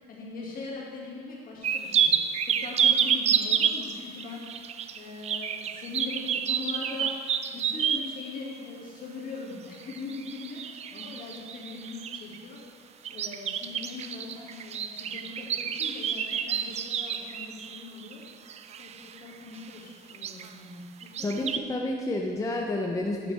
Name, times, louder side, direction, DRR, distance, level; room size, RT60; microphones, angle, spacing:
voice 1, 0.1-18.2 18.7-21.3, left 3 dB, 55° left, -3 dB, 2.1 m, -41 dB
sound 1, 1.6-8.2 9.8-12.4 13.0-19.2 19.5-19.8 20.1-20.5 21.0-21.6, right 8 dB, 40° right, 0.4 m, -29 dB
voice 2, 21.2-23.3, left 1 dB, 20° left, 0 dB, 0.7 m, -30 dB
12.0 x 5.9 x 3.4 m, 2.2 s
cardioid pair, 110°, 17 cm